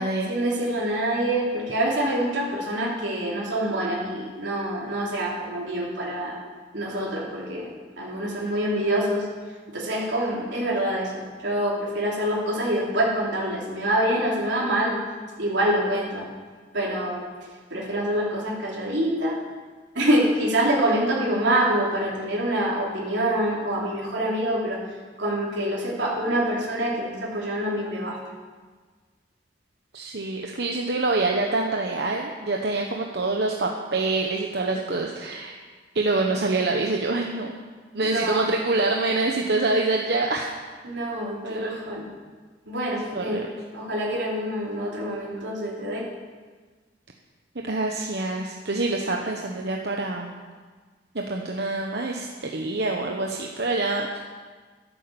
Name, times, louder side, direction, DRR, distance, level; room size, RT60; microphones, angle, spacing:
voice 1, 0.3-6.4 6.7-9.3 9.7-15.0 15.4-16.3 16.7-17.2 17.7-19.4 19.9-28.2 38.0-38.5 40.8-42.1 42.7-43.4 43.7-46.1 49.0-49.1, right 1 dB, 85° right, -4 dB, 3.3 m, -26 dB
voice 2, 29.9-35.6 35.9-37.5 37.9-40.5 41.4-41.8 43.1-43.5 47.5-50.3 51.1-54.2, right 2 dB, 60° right, 1 dB, 1.1 m, -26 dB
13.0 x 11.0 x 7.1 m, 1.5 s
head